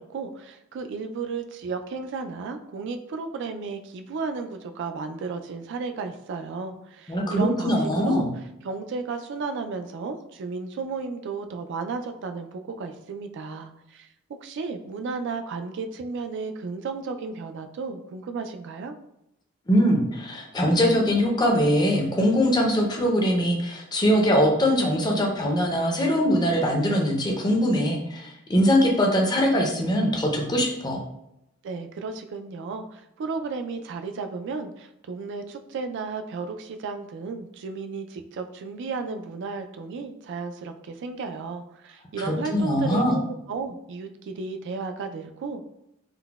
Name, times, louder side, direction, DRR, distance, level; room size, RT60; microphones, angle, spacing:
voice 1, 0.0-8.3 8.6-14.1 14.4-18.9 31.6-43.2 43.5-45.6, right 4 dB, 60° right, 7 dB, 0.3 m, -33 dB
voice 2, 7.1-8.3 19.7-31.0 42.2-43.2, equal, 20° left, 1 dB, 0.5 m, -22 dB
3.8 x 2.1 x 2.2 m, 0.83 s
head